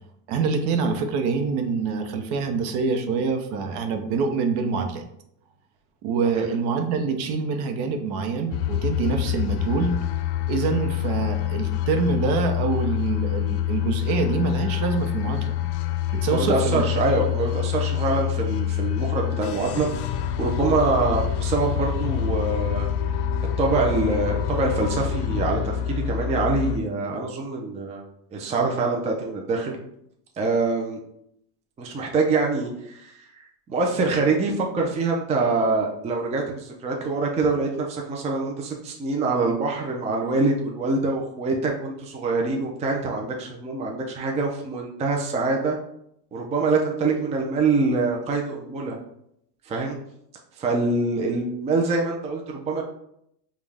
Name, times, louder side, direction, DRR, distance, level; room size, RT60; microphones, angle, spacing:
voice 1, 0.3-5.0 6.0-9.9 10.5-15.5 16.1-16.8, right 5 dB, 55° right, 6 dB, 0.8 m, -25 dB
sound 1, 8.5-26.8, left 11 dB, 75° left, 0.6 m, -26 dB
voice 2, 16.3-19.9 20.4-22.9 23.6-28.0 28.3-29.8 30.4-31.0 31.8-33.4 33.7-45.8 46.3-49.0 49.6-50.0 50.6-52.8, right 3 dB, 15° right, 0 dB, 0.4 m, -25 dB
5.2 x 2.4 x 3.4 m, 0.75 s
supercardioid pair, 125°, 46 cm